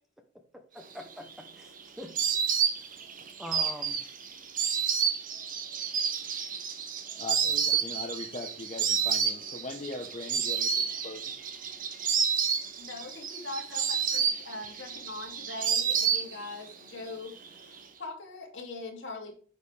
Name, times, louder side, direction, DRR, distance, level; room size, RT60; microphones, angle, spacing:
voice 1, 0.7-2.4 3.4-4.0 7.4-7.8, left 1 dB, ahead, 5 dB, 0.8 m, -44 dB
Insect, 1.0-16.7 17.0-17.8, right 7 dB, 40° right, 0.9 m, -30 dB
voice 2, 7.2-11.3, left 2 dB, 30° left, 1 dB, 0.8 m, -40 dB
voice 3, 12.8-19.3, left 2 dB, 60° left, 0 dB, 2.5 m, -41 dB
9.4 x 5.3 x 3.3 m, 0.43 s
head